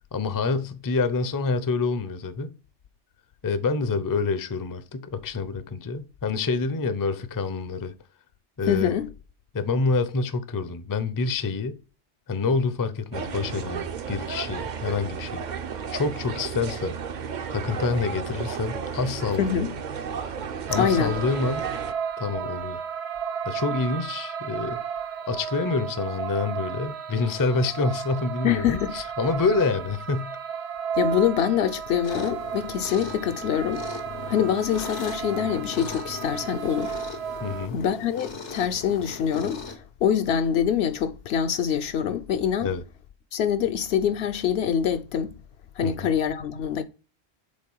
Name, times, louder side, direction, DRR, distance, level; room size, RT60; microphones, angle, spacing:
voice 1, 0.1-2.5 3.4-7.9 8.6-8.9 9.5-11.8 12.3-15.4 15.9-17.0 17.5-19.6 20.7-21.7 22.2-22.8 23.5-24.8 25.3-30.3 37.4-37.8 42.6-42.8 45.8-46.1, left 4 dB, 25° left, 0.4 m, -27 dB
voice 2, 8.7-9.1 19.4-19.7 20.7-21.1 28.4-28.9 31.0-33.9 34.3-36.9 37.7-42.7 43.3-45.3 45.8-46.8, left 8 dB, 70° left, 0.8 m, -25 dB
sound 1, 13.1-21.9, right 6 dB, 50° right, 0.6 m, -33 dB
sound 2, 20.7-37.7, right 7 dB, 75° right, 1.0 m, -34 dB
sound 3, 32.0-39.8, left 5 dB, 85° left, 1.5 m, -39 dB
5.2 x 3.7 x 5.4 m
omnidirectional pair, 1.2 m